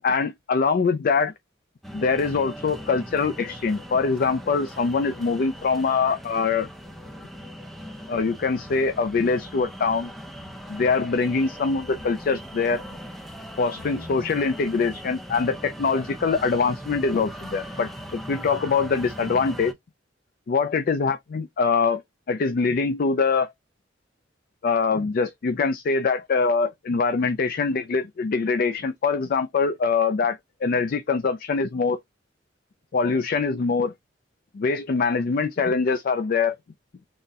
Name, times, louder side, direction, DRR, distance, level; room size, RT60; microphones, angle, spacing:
voice 1, 0.0-1.3 1.9-6.7 8.1-10.1 10.7-12.8 13.6-19.7 20.5-22.0 22.3-23.5 24.6-32.0 32.9-33.9 34.5-36.6, left 4 dB, 50° left, 0.4 m, -23 dB
sound 1, 1.8-19.7, equal, ahead, 0.5 m, -39 dB
4.1 x 2.1 x 3.5 m
head